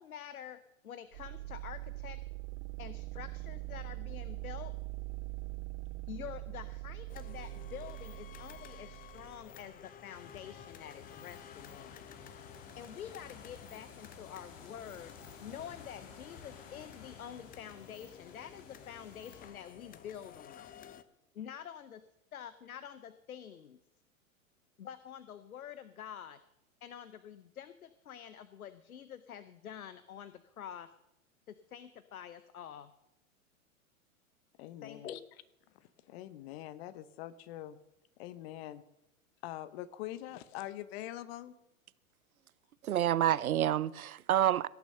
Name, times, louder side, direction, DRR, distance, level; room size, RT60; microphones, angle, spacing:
voice 1, 0.0-2.2 2.8-4.7 6.1-12.0 12.7-15.1 15.4-20.7 21.3-22.0 22.3-23.8 24.8-26.4 26.8-30.9 31.7-32.9 34.8-35.2, left 9 dB, 85° left, 0.8 m, -47 dB
sound 1, 1.1-9.8, right 22 dB, 40° right, 0.4 m, -43 dB
sound 2, 7.1-21.0, left 9 dB, 20° left, 0.7 m, -54 dB
sound 3, 10.1-19.5, left 5 dB, 60° left, 3.0 m, -54 dB
voice 2, 34.6-35.2 35.7-37.8 38.2-38.8 39.4-41.5, left 14 dB, 45° left, 1.0 m, -44 dB
voice 3, 42.8-44.7, right 11 dB, 85° right, 0.6 m, -28 dB
17.5 x 7.2 x 6.6 m
hypercardioid pair, 105°, 42 cm